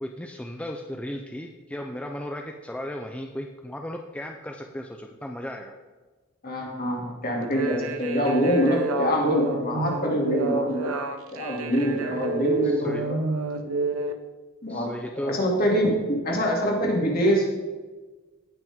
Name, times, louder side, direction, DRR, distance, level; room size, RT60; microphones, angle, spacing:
voice 1, 0.0-5.7 12.6-13.1 14.7-15.4, equal, 5° left, 3 dB, 0.4 m, -35 dB
voice 2, 6.4-10.9 11.3-13.2 14.6-14.9 15.2-17.5, equal, 45° left, -1 dB, 2.5 m, -25 dB
sound 1, 7.4-14.1, right 2 dB, 90° right, 0.9 m, -29 dB
18.0 x 6.1 x 3.6 m, 1.3 s
head